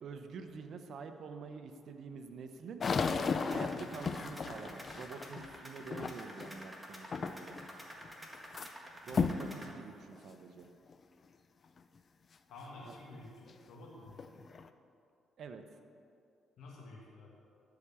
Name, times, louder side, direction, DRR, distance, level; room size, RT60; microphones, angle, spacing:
voice 1, 0.0-2.9 3.5-7.6 9.0-10.7 12.8-12.9 15.4-15.6, right 5 dB, 65° right, 7 dB, 0.8 m, -47 dB
sound 1, 2.8-6.6 7.1-7.7 8.0-8.7 9.1-9.5 10.1-10.2 10.9-11.0 13.5-13.6 14.1-14.7, left 5 dB, 45° left, 0.5 m, -35 dB
sound 2, 2.9-9.7, equal, 5° right, 1.6 m, -50 dB
voice 2, 12.5-14.5 16.6-17.3, left 2 dB, 75° left, -4 dB, 2.0 m, -51 dB
12.0 x 4.9 x 6.9 m, 2.5 s
cardioid pair, 90°, 0 cm